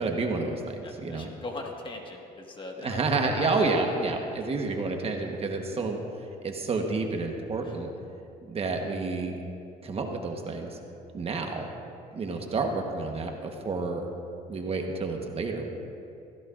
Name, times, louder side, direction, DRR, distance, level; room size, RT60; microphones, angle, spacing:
voice 1, 0.0-1.3 2.8-6.0 6.4-7.9 8.5-9.4 9.8-10.7 11.1-11.7 12.1-14.0 14.5-15.7, right 3 dB, 35° right, 3 dB, 1.2 m, -29 dB
voice 2, 0.8-3.0 3.4-3.6, left 2 dB, 30° left, 1 dB, 1.6 m, -39 dB
15.5 x 15.0 x 2.5 m, 2.7 s
cardioid pair, 110°, 17 cm